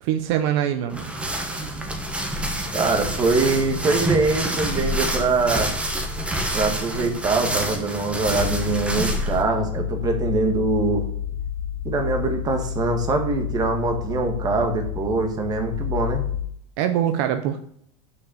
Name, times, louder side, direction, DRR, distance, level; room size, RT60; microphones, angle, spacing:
voice 1, 0.0-1.0 16.8-17.6, right 10 dB, 60° right, 8 dB, 0.8 m, -23 dB
sound 1, 0.9-9.4, right 1 dB, 5° right, 1.2 m, -27 dB
voice 2, 2.7-5.7 6.5-11.0 11.8-16.2, right 3 dB, 25° right, 5 dB, 1.6 m, -23 dB
sound 2, 8.2-16.4, left 9 dB, 55° left, 2.2 m, -30 dB
6.4 x 5.8 x 6.9 m, 0.65 s
supercardioid pair, 145°, 16 cm